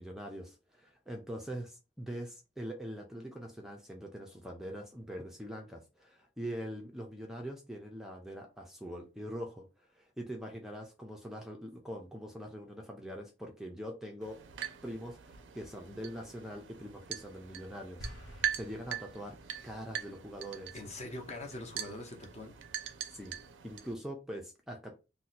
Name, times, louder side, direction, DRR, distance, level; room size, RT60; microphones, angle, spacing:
voice 1, 0.0-9.7 9.9-14.4 14.8-19.4 19.6-20.8 23.1-23.4 23.6-24.9, equal, 5° right, 0.4 m, -43 dB
sound 1, 14.2-23.9, right 9 dB, 75° right, 0.4 m, -42 dB
sound 2, 18.0-19.6, equal, 80° left, 0.9 m, -48 dB
voice 2, 20.7-22.5, left 2 dB, 40° left, 0.7 m, -43 dB
2.7 x 2.1 x 3.9 m
head